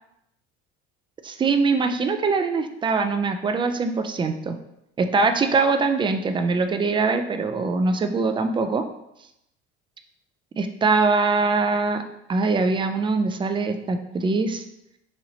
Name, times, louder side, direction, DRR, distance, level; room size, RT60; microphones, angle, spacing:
voice 1, 1.2-4.6 5.0-8.8 10.6-12.0 12.3-14.6, right 4 dB, 15° right, 8 dB, 0.3 m, -22 dB
4.2 x 2.9 x 2.7 m, 0.83 s
hypercardioid pair, 75°, 30 cm